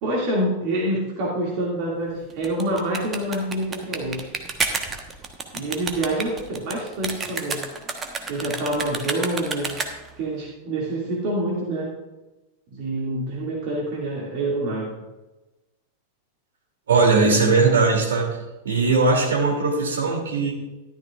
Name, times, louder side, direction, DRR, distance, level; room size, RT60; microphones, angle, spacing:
voice 1, 0.0-4.2 5.5-7.6 8.3-9.7 10.2-11.9 12.7-15.0, right 1 dB, 45° right, -3 dB, 2.4 m, -26 dB
sound 1, 2.3-10.2, right 4 dB, 20° right, 1.3 m, -30 dB
voice 2, 16.9-18.4 18.6-20.5, right 3 dB, 65° right, 1 dB, 2.9 m, -19 dB
13.5 x 11.5 x 2.5 m, 1.1 s
figure-of-eight pair, 90°, 0 cm